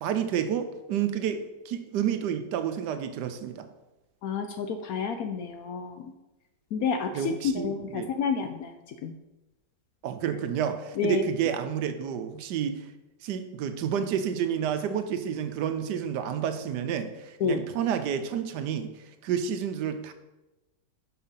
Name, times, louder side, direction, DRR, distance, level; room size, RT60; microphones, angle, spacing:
voice 1, 0.0-3.7 7.1-8.1 10.0-12.9 13.2-18.9 19.2-20.1, right 8 dB, 75° right, 9 dB, 1.2 m, -30 dB
voice 2, 4.2-6.1 6.7-9.1 11.0-11.2 17.4-17.6, left 5 dB, 70° left, 7 dB, 0.9 m, -30 dB
5.8 x 5.5 x 5.5 m, 1.0 s
omnidirectional pair, 1.9 m